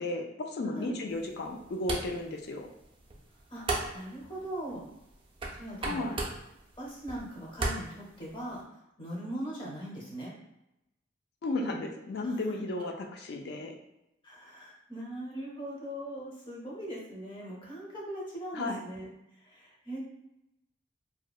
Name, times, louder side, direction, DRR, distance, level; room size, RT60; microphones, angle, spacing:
voice 1, 0.0-2.7 5.8-6.2 11.4-13.7 18.5-18.8, left 2 dB, 55° left, 3 dB, 0.4 m, -34 dB
voice 2, 0.6-0.9 3.5-3.6 3.9-4.8 5.5-6.1 6.8-8.6 9.0-10.3 12.2-12.3 14.2-19.1 19.4-20.0, right 1 dB, 25° left, -4 dB, 0.7 m, -40 dB
sound 1, 1.1-8.6, right 2 dB, 25° right, 0.3 m, -39 dB
2.7 x 2.0 x 2.3 m, 0.88 s
head